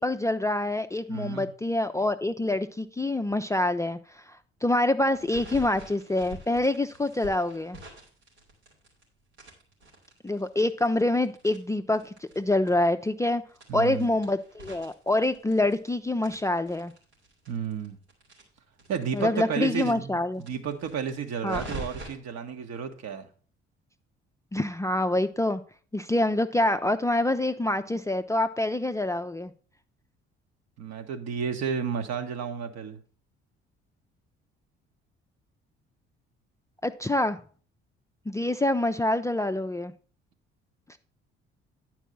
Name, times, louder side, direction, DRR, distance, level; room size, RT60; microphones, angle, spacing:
voice 1, 0.0-7.8 10.2-13.4 13.7-16.9 19.1-20.4 21.4-21.6 24.5-25.6 25.9-29.5 36.8-37.4 38.3-39.9 40.9-41.0, left 1 dB, 10° left, 7 dB, 0.5 m, -26 dB
voice 2, 1.1-1.5 13.7-14.1 17.5-18.0 18.9-23.3 30.8-33.0, right 7 dB, 55° right, 6 dB, 1.4 m, -32 dB
sound 1, 5.1-9.0 9.3-12.4 12.7-12.8 13.0-13.1 13.5-15.9 16.2-19.2 19.5-19.6 19.9-20.0 20.4-22.1, right 1 dB, 85° right, 2.7 m, -44 dB
10.0 x 4.7 x 5.5 m, 0.41 s
figure-of-eight pair, 50°, 32 cm